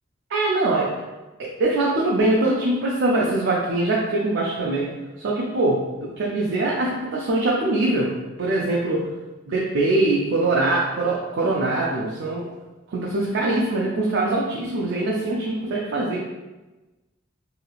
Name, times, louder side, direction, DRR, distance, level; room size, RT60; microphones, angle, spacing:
voice 1, 0.3-0.9 1.4-8.1 8.4-9.1 9.5-12.5 12.9-16.2, right 2 dB, 65° right, -3 dB, 0.4 m, -23 dB
3.0 x 2.7 x 2.3 m, 1.1 s
head